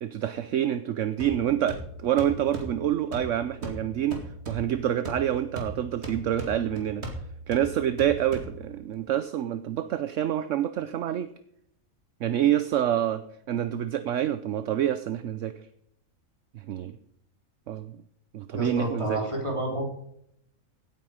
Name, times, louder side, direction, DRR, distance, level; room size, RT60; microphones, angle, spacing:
voice 1, 0.0-4.2 4.5-7.0 7.5-11.3 12.2-13.2 13.5-15.6 16.5-17.0 17.7-17.9 18.3-19.2, right 11 dB, 65° right, 12 dB, 1.0 m, -27 dB
sound 1, 1.2-8.9, right 1 dB, 50° right, 2.8 m, -39 dB
voice 2, 18.5-19.8, right 1 dB, 20° right, 1 dB, 3.5 m, -29 dB
16.5 x 9.2 x 4.9 m, 0.73 s
omnidirectional pair, 1.4 m